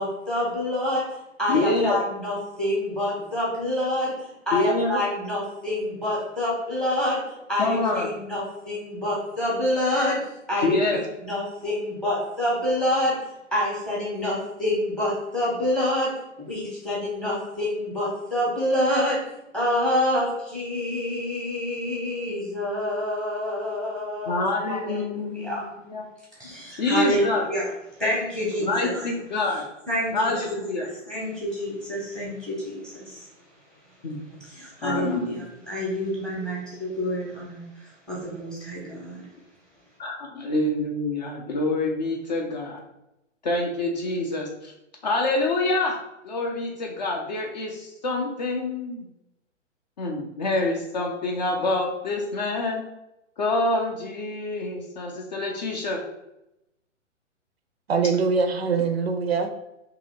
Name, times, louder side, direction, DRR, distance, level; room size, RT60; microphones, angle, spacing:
voice 1, 0.0-13.2 13.5-19.3 19.5-24.4 24.7-25.6 26.4-27.7 28.0-29.1 29.9-33.3 34.3-39.2, left 1 dB, ahead, -6 dB, 0.8 m, -27 dB
voice 2, 1.5-2.0 4.5-5.0 7.6-8.1 10.6-11.0 24.3-25.6 25.9-26.1 26.8-27.4 28.6-29.6 30.1-30.9 34.0-34.2 34.8-35.4 40.0-42.8 43.4-44.7 45.0-46.0 46.2-49.1 50.0-52.8 53.4-56.0, left 2 dB, 35° left, 1 dB, 0.5 m, -26 dB
voice 3, 57.9-59.6, right 5 dB, 55° right, 7 dB, 0.5 m, -23 dB
2.8 x 2.7 x 4.0 m, 0.88 s
figure-of-eight pair, 120°, 38 cm